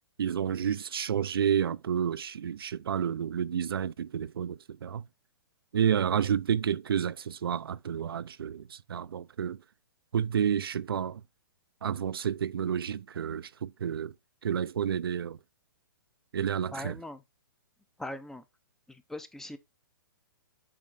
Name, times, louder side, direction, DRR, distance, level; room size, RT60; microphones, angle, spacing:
voice 1, 0.2-5.0 5.7-9.6 10.1-11.2 11.8-14.1 14.4-15.4 16.3-17.0, right 8 dB, 85° right, 0.5 m, -30 dB
voice 2, 16.7-17.2 18.0-18.4 18.9-19.6, left 1 dB, 5° left, 0.6 m, -40 dB
7.6 x 4.6 x 3.9 m
hypercardioid pair, 140°, 12 cm